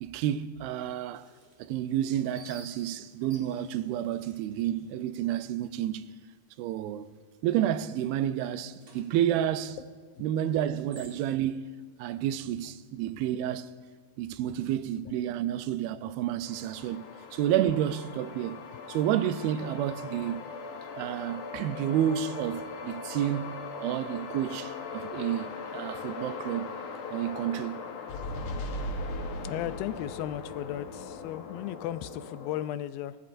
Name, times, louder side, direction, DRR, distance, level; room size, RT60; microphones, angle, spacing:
voice 1, 0.0-1.3 1.6-6.0 6.6-7.1 7.4-9.8 10.2-11.7 12.0-13.7 14.2-17.1 17.3-18.6 18.9-20.4 21.0-26.7 27.1-27.8, right 11 dB, 90° right, 2.5 m, -30 dB
sound 1, 1.1-6.0 6.3-6.4 6.9-7.3 7.6-11.6, right 2 dB, 45° right, 1.2 m, -55 dB
sound 2, 16.5-32.7, left 3 dB, 65° left, 1.7 m, -39 dB
voice 2, 29.4-33.2, left 12 dB, 85° left, 2.3 m, -35 dB
23.0 x 19.0 x 2.6 m
omnidirectional pair, 4.2 m